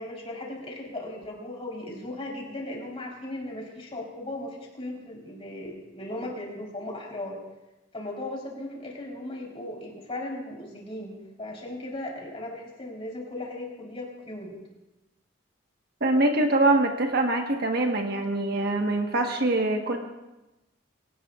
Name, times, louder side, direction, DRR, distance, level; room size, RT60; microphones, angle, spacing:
voice 1, 0.0-7.4 7.9-14.6, left 1 dB, 30° left, -2 dB, 4.0 m, -37 dB
voice 2, 16.0-20.0, right 2 dB, 50° right, 3 dB, 1.4 m, -24 dB
24.0 x 18.0 x 2.5 m, 1.0 s
head